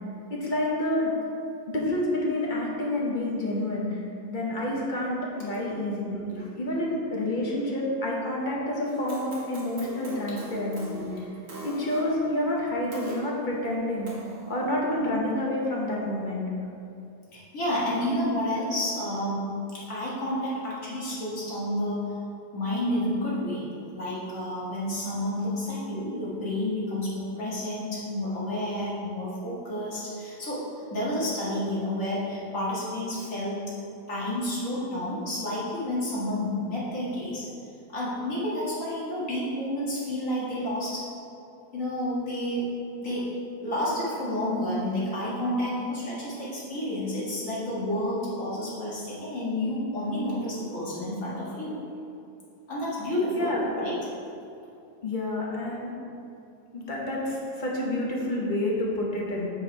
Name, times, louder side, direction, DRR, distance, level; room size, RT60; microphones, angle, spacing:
voice 1, 0.3-1.1 1.7-4.0 4.3-11.1 11.6-14.1 14.5-16.4 53.4-53.6 55.0-56.0 56.7-59.5, left 1 dB, 35° left, -3 dB, 1.1 m, -28 dB
sound 1, 8.8-13.2 14.0-14.7, equal, 55° right, 1.5 m, -42 dB
voice 2, 17.3-22.2 22.5-23.7 23.9-30.6 30.9-33.6 34.1-37.5 37.9-41.0 41.7-42.6 43.0-43.3 43.6-51.7 52.7-54.0, left 1 dB, 60° left, -7 dB, 2.1 m, -30 dB
6.2 x 4.7 x 4.6 m, 2.6 s
omnidirectional pair, 1.6 m